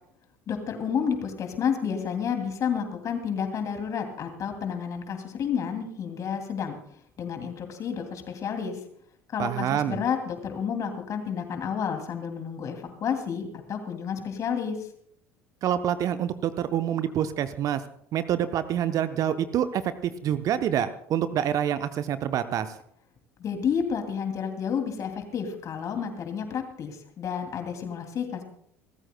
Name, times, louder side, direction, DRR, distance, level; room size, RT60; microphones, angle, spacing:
voice 1, 0.5-6.8 7.2-8.8 9.3-14.8 23.4-28.4, left 7 dB, 40° left, 5 dB, 2.6 m, -30 dB
voice 2, 9.4-10.0 15.6-17.8 18.1-22.7, right 10 dB, 45° right, 12 dB, 0.8 m, -27 dB
30.0 x 13.5 x 2.2 m, 0.67 s
figure-of-eight pair, 65°, 8 cm